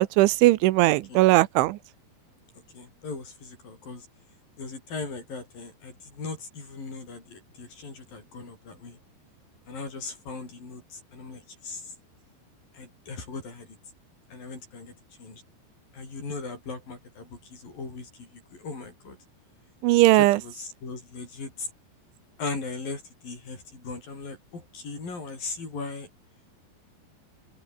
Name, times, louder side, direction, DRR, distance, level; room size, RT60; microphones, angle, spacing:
voice 1, 0.0-1.8 19.8-20.4, right 18 dB, 85° right, 3.2 m, -19 dB
voice 2, 2.7-4.1 4.6-9.0 9.7-12.0 12.7-13.8 14.3-15.4 15.9-19.2 20.1-21.7 22.4-26.1, left 4 dB, 50° left, 9.4 m, -38 dB
omnidirectional pair, 5.4 m